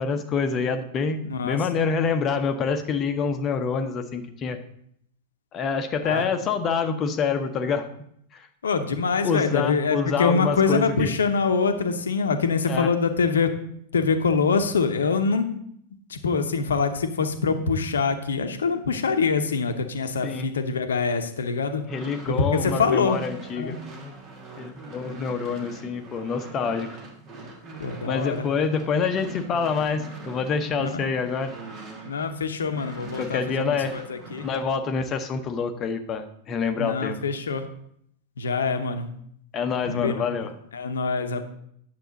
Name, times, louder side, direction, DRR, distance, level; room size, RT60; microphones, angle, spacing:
voice 1, 0.0-4.6 5.5-7.9 8.3-8.5 9.2-11.2 12.7-12.9 20.2-20.5 21.9-23.8 24.6-26.9 28.1-31.5 33.2-34.0 34.4-37.2 39.5-40.5, left 5 dB, 30° left, 8 dB, 0.8 m, -26 dB
voice 2, 1.2-1.6 6.0-6.2 8.6-13.5 13.9-15.4 16.1-21.8 22.3-23.2 23.5-23.8 27.8-28.5 30.8-31.1 32.0-34.5 36.8-37.7 38.4-39.1 39.9-40.2 40.7-41.5, left 5 dB, 70° left, 8 dB, 0.8 m, -24 dB
sound 1, 21.7-32.4 32.7-34.6, right 2 dB, 35° right, 1.6 m, -42 dB
9.2 x 6.8 x 3.9 m, 0.69 s
figure-of-eight pair, 90°, 0 cm